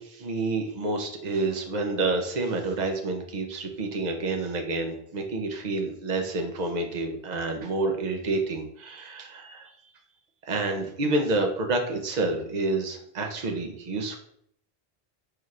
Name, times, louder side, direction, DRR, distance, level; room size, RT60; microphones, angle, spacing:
voice 1, 0.0-9.7 10.5-14.2, right 2 dB, 45° right, 3 dB, 0.8 m, -29 dB
4.8 x 4.4 x 2.5 m, 0.67 s
omnidirectional pair, 1.1 m